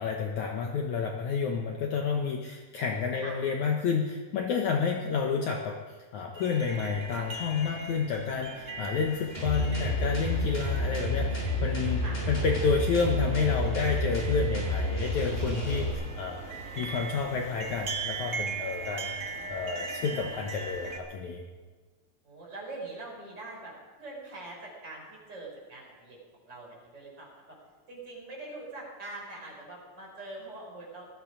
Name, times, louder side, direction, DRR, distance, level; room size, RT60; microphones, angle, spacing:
voice 1, 0.0-19.2 19.5-21.4, left 5 dB, 65° left, 2 dB, 2.1 m, -30 dB
sound 1, 6.3-21.0, right 4 dB, 80° right, 0.7 m, -40 dB
sound 2, 9.3-15.9, left 1 dB, 15° left, 5.8 m, -30 dB
voice 2, 18.8-19.6 22.2-26.2 26.5-27.3 27.9-31.1, right 2 dB, 30° right, -3 dB, 5.8 m, -44 dB
19.5 x 14.5 x 5.0 m, 1.4 s
omnidirectional pair, 4.2 m